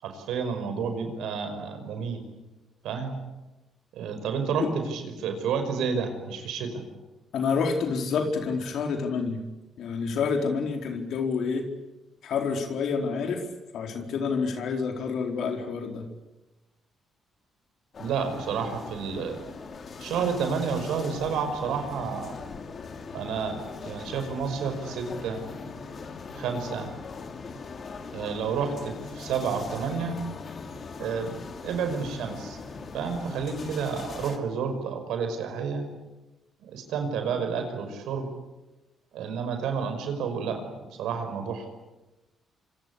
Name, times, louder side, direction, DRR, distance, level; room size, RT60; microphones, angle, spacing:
voice 1, 0.0-2.2 2.8-3.1 3.9-6.8 18.0-19.5 20.0-22.3 23.1-25.4 26.4-26.9 28.1-30.2 31.0-32.6 32.9-35.9 36.7-38.3 39.1-40.6 41.0-41.7, right 6 dB, 85° right, 7 dB, 5.5 m, -30 dB
voice 2, 7.3-9.4 9.8-11.7 12.2-13.4 13.7-16.1, left 5 dB, 75° left, 4 dB, 4.3 m, -28 dB
sound 1, 17.9-34.4, left 4 dB, 45° left, 3.0 m, -40 dB
26.0 x 25.5 x 8.4 m, 1.1 s
cardioid pair, 90°, 0 cm